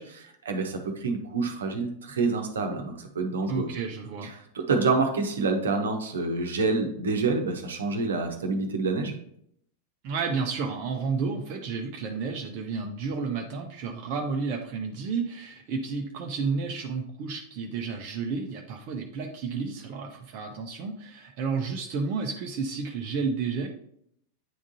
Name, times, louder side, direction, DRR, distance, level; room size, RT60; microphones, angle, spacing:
voice 1, 0.0-3.7 4.2-9.1, right 3 dB, 65° right, 4 dB, 0.9 m, -27 dB
voice 2, 3.5-4.3 10.0-23.7, right 5 dB, 45° right, 2 dB, 0.7 m, -31 dB
9.3 x 3.6 x 2.7 m, 0.70 s
figure-of-eight pair, 90°, 0 cm